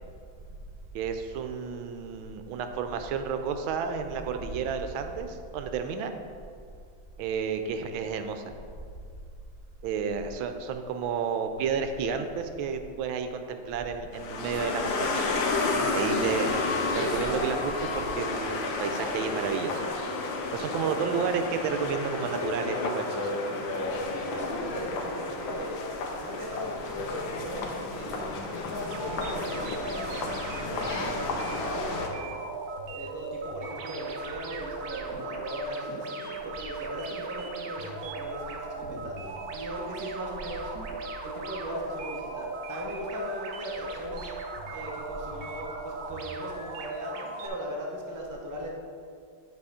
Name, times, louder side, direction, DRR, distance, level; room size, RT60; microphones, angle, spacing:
voice 1, 0.9-6.1 7.2-8.4 9.8-15.2 15.9-16.5 16.9-19.8 20.5-23.3, right 6 dB, 80° right, 7 dB, 1.3 m, -31 dB
sound 1, 14.1-32.1, left 3 dB, 70° left, 1.5 m, -31 dB
voice 2, 24.2-25.8 26.2-30.4 30.8-32.3 32.9-40.7 41.2-44.3 44.7-48.7, equal, 25° right, -3 dB, 0.4 m, -38 dB
sound 2, 28.9-47.5, right 3 dB, 65° right, 1.0 m, -38 dB
8.4 x 4.1 x 5.0 m, 2.2 s
omnidirectional pair, 2.2 m